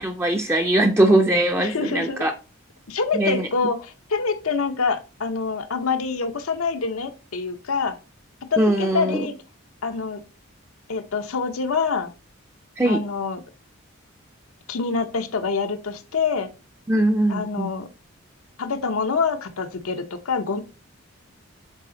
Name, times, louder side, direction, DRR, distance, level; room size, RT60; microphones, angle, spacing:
voice 1, 0.0-2.3 3.1-3.5 8.6-9.3 12.8-13.0 16.9-17.7, right 1 dB, 10° right, 3 dB, 0.5 m, -20 dB
voice 2, 1.6-2.2 2.9-8.0 8.5-9.3 9.8-10.2 10.9-12.1 12.9-13.4 14.7-16.5 17.3-17.9 18.6-20.6, left 5 dB, 85° left, 8 dB, 0.9 m, -26 dB
7.5 x 4.2 x 3.8 m, 0.33 s
head